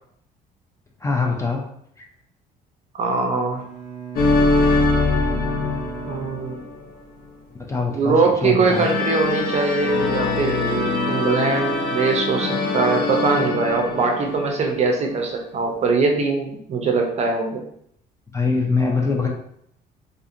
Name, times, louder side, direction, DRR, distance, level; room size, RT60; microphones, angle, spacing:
voice 1, 1.0-1.6 7.6-8.9 18.3-19.3, left 4 dB, 15° left, -1 dB, 0.5 m, -23 dB
voice 2, 2.9-3.6 6.0-6.6 7.9-17.6, right 4 dB, 40° right, 2 dB, 0.5 m, -22 dB
Bowed string instrument, 3.5-7.1, right 8 dB, 25° right, 1.0 m, -36 dB
sound 1, 4.2-6.8 8.7-14.9, left 3 dB, 60° left, 0.6 m, -23 dB
2.6 x 2.5 x 2.5 m, 0.69 s
cardioid pair, 110°, 17 cm